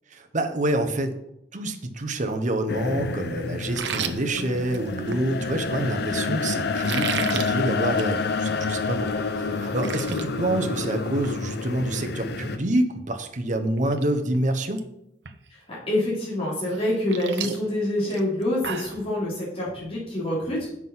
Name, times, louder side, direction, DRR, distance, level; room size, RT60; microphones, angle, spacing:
voice 1, 0.1-1.2 1.5-9.3 9.6-14.9, right 1 dB, 45° right, 7 dB, 1.0 m, -27 dB
sound 1, 2.7-12.6, left 4 dB, 65° left, 0.7 m, -28 dB
sound 2, 3.6-5.2 6.7-7.5 7.9-8.1 8.5-8.6 9.1-9.2 9.4-10.2 10.6-10.9 11.2-11.4 13.2-13.3 13.8-14.1 14.3-14.8 15.2-15.3 16.7-19.0, right 7 dB, 75° right, 0.8 m, -32 dB
voice 2, 15.5-20.7, left 1 dB, 35° left, -7 dB, 3.7 m, -26 dB
7.7 x 6.1 x 5.6 m, 0.81 s
head